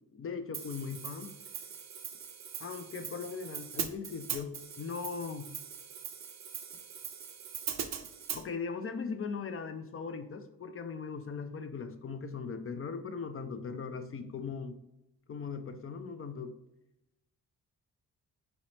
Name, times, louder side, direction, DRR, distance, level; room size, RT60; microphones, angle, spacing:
voice 1, 0.2-1.3 2.6-5.5 8.3-14.7 15.3-16.5, left 5 dB, 35° left, 8 dB, 0.4 m, -39 dB
Hi-hat, 0.5-8.4, right 8 dB, 45° right, 0.5 m, -41 dB
3.0 x 2.9 x 3.0 m, 0.88 s
supercardioid pair, 40°, 38 cm